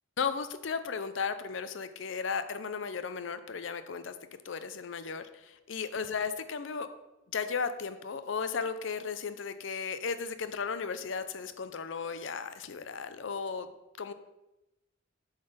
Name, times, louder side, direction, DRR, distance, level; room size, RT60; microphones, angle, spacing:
voice 1, 0.2-4.1 4.4-6.9 7.3-13.7 14.0-14.1, left 5 dB, 65° left, 11 dB, 0.5 m, -35 dB
8.0 x 4.0 x 5.0 m, 0.97 s
head